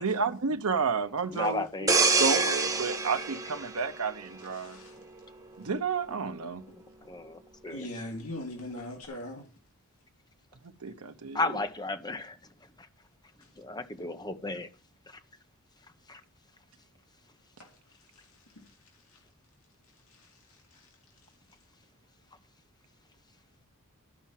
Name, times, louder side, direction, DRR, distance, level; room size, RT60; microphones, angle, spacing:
voice 1, 0.0-4.8 5.6-6.6 10.8-11.6, right 5 dB, 75° right, 0.8 m, -31 dB
voice 2, 1.3-2.0 7.0-7.9 11.3-12.4 13.6-14.7 16.1-16.2, left 2 dB, 20° left, 1.1 m, -34 dB
sound 1, 1.9-4.6 5.0-5.2, right 4 dB, 15° right, 1.5 m, -27 dB
voice 3, 4.5-5.0 6.7-6.8 7.7-9.5 17.6-17.7 18.5-18.6 19.1-19.2 20.1-20.4 20.7-20.9, left 1 dB, 70° left, 2.7 m, -41 dB
12.5 x 5.5 x 7.4 m
head